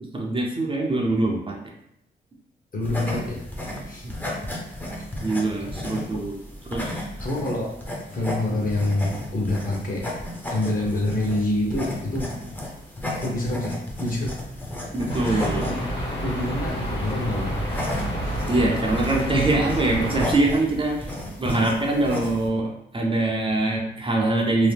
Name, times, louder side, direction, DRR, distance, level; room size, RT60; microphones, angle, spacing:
voice 1, 0.1-1.6 5.2-6.4 6.7-7.0 14.9-15.6 18.5-21.1 21.4-24.7, right 2 dB, 30° right, -1 dB, 0.6 m, -23 dB
voice 2, 2.7-3.4 3.9-4.1 5.0-5.1 6.1-6.2 7.2-7.7 8.1-10.0 10.5-12.3 13.2-14.3 15.2-17.6 18.1-18.4, left 1 dB, 50° left, -2 dB, 1.0 m, -27 dB
sound 1, 2.8-22.5, left 1 dB, 10° left, 0.6 m, -34 dB
sound 2, 15.1-20.4, equal, 65° left, 1.3 m, -29 dB
2.8 x 2.0 x 3.4 m, 0.78 s
cardioid pair, 80°, 19 cm